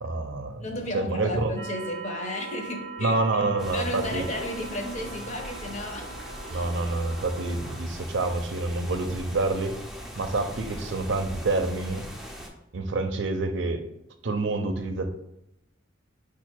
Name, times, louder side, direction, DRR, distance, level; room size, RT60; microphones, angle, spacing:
voice 1, 0.0-0.6 0.9-1.5 3.0-4.3 6.5-9.7 10.2-12.1 12.7-13.8 14.2-15.1, right 2 dB, 65° right, 6 dB, 0.6 m, -27 dB
voice 2, 0.6-6.2 6.4-6.7, left 1 dB, 35° left, 2 dB, 0.8 m, -34 dB
sound 1, 1.6-7.8, right 4 dB, 70° left, 1.4 m, -41 dB
sound 2, 3.6-12.5, equal, ahead, 0.5 m, -40 dB
4.8 x 2.5 x 4.4 m, 0.83 s
head